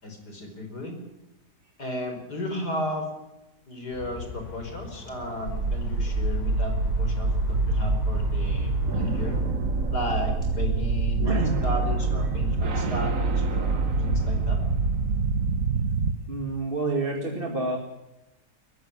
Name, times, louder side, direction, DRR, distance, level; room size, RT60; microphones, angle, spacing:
voice 1, 0.0-1.0 1.8-3.1 3.7-9.4 9.9-14.6, left 1 dB, 75° left, 5 dB, 5.3 m, -34 dB
sound 1, 3.9-9.4, left 2 dB, 45° left, 5.3 m, -40 dB
sound 2, 5.5-16.1, right 3 dB, 55° right, 1.8 m, -25 dB
voice 2, 11.2-11.6 16.3-17.8, right 3 dB, 35° right, 2 dB, 2.5 m, -28 dB
22.0 x 14.5 x 9.8 m, 0.92 s
omnidirectional pair, 1.8 m